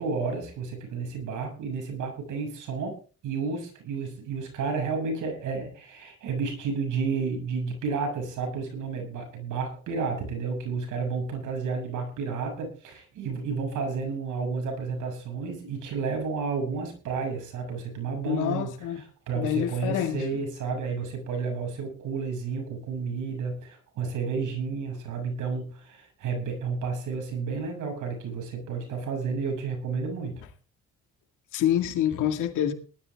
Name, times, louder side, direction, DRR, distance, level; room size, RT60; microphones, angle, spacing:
voice 1, 0.0-3.0 3.2-30.4, right 5 dB, 80° right, 7.0 m, -31 dB
voice 2, 18.2-19.0 19.3-20.4 31.5-32.7, left 10 dB, 90° left, 2.2 m, -27 dB
19.0 x 12.5 x 3.6 m
cardioid pair, 90°, 30 cm